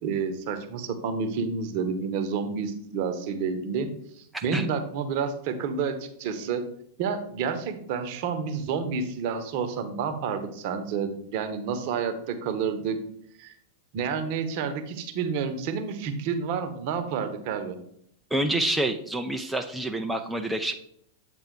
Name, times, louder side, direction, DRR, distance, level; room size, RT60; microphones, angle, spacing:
voice 1, 0.0-6.6 7.0-13.0 13.4-13.5 13.9-17.8, right 6 dB, 50° right, 8 dB, 0.9 m, -29 dB
voice 2, 18.3-20.7, right 1 dB, 5° right, 4 dB, 0.5 m, -27 dB
7.9 x 3.8 x 4.6 m, 0.71 s
figure-of-eight pair, 95°, 0 cm